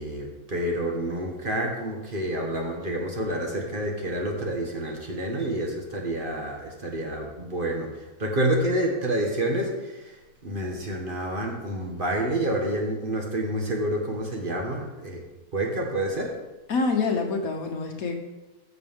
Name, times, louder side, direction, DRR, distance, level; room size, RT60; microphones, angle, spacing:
voice 1, 0.0-15.2 15.5-16.4, right 1 dB, 35° right, 1 dB, 1.5 m, -28 dB
voice 2, 16.7-18.2, left 4 dB, 70° left, 4 dB, 1.4 m, -26 dB
14.5 x 6.9 x 3.6 m, 1.1 s
omnidirectional pair, 1.6 m